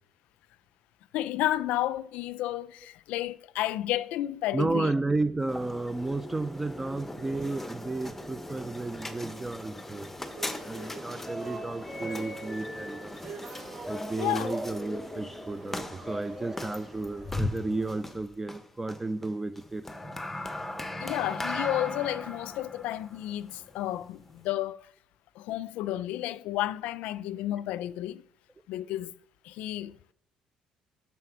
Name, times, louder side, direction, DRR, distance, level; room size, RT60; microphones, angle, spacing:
voice 1, 1.1-4.9 14.2-14.5 21.0-24.9 25.4-28.2 28.7-29.2 29.4-30.1, left 14 dB, 85° left, 0.5 m, -32 dB
voice 2, 4.5-10.1 10.6-13.2 13.9-19.8, right 2 dB, 15° right, 0.4 m, -32 dB
sound 1, 5.4-24.5, left 1 dB, 10° left, 0.9 m, -38 dB
sound 2, 10.3-17.5, right 4 dB, 50° right, 4.1 m, -47 dB
7.6 x 5.6 x 6.1 m
cardioid pair, 135°, 2 cm